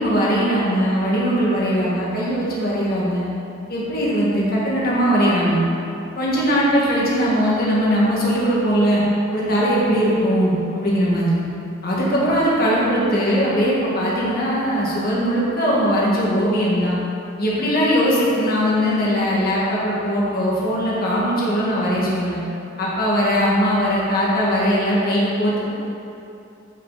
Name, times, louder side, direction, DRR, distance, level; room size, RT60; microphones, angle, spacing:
voice 1, 0.0-3.3 3.7-5.6 6.2-9.0 9.3-11.4 11.8-17.0 17.4-22.4 22.8-25.6, equal, 45° left, -6 dB, 1.9 m, -20 dB
14.5 x 6.2 x 4.1 m, 2.8 s
head